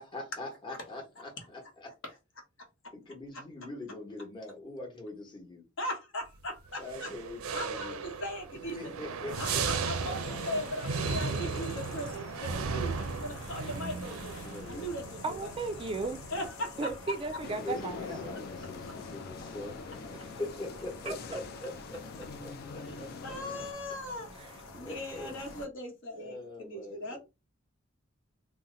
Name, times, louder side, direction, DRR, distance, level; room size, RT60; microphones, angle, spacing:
voice 1, 0.0-1.9 2.9-5.6 6.8-8.0 8.7-9.6 10.0-10.4 11.4-11.7 14.4-14.9 17.6-23.6 24.8-25.4 26.1-27.2, left 2 dB, 25° left, 1.0 m, -43 dB
voice 2, 5.8-7.1 7.5-8.8 9.4-14.3 14.7-15.5 16.3-17.1 22.8-24.3 24.7-27.2, left 1 dB, 65° left, 1.1 m, -39 dB
sound 1, 6.8-16.5, right 5 dB, 90° right, 0.5 m, -36 dB
sound 2, 9.3-25.7, left 3 dB, 85° left, 0.7 m, -48 dB
voice 3, 15.2-16.2 16.8-18.4 20.2-20.3 21.1-21.2 24.4-24.5, right 3 dB, 25° right, 0.4 m, -35 dB
sound 3, 17.4-23.7, left 4 dB, 50° left, 0.4 m, -44 dB
2.7 x 2.1 x 3.7 m
head